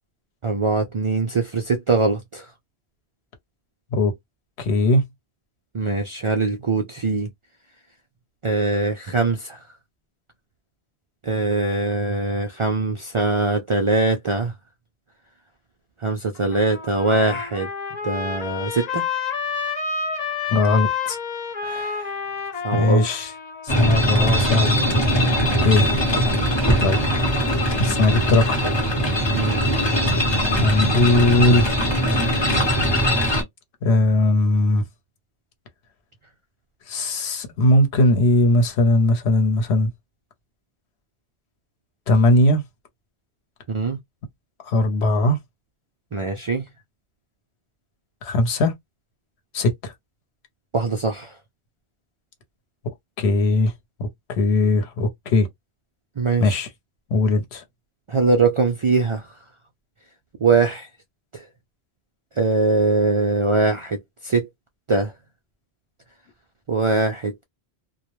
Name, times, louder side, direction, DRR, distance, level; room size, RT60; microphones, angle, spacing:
voice 1, 0.4-2.5 5.7-7.3 8.4-9.6 11.2-14.5 16.0-17.7 18.0-19.1 21.6-22.2 22.6-23.1 29.3-29.6 43.7-44.0 46.1-46.7 50.7-51.4 56.2-56.6 58.1-59.3 60.4-60.9 61.3-61.4 62.4-64.5 64.9-65.1 66.7-67.4, right 3 dB, 55° right, 0.3 m, -22 dB
voice 2, 4.6-5.0 20.5-21.2 22.7-23.3 23.6-24.8 25.2-25.9 26.8-27.0 27.8-28.6 30.6-31.7 33.8-34.8 36.9-39.9 42.1-42.6 44.6-45.4 48.2-48.8 49.5-49.9 52.8-53.7 54.0-55.5 56.4-56.7 57.1-57.6, left 2 dB, 85° left, 1.0 m, -19 dB
Trumpet, 16.3-24.8, left 6 dB, 50° left, 0.6 m, -29 dB
sound 1, 23.7-33.4, equal, 25° left, 0.9 m, -21 dB
2.2 x 2.1 x 3.0 m
omnidirectional pair, 1.1 m